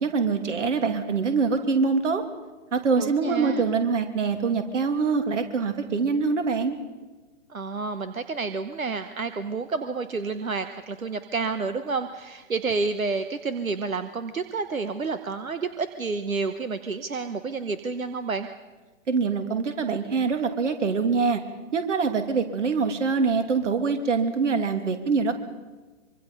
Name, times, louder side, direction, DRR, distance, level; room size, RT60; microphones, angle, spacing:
voice 1, 0.0-2.2 2.7-6.8 19.1-21.4 21.7-25.3, right 5 dB, 65° right, 7 dB, 2.8 m, -24 dB
voice 2, 3.0-3.6 7.5-18.5, right 4 dB, 90° right, 10 dB, 1.2 m, -30 dB
24.5 x 24.0 x 5.4 m, 1.2 s
figure-of-eight pair, 125°, 40 cm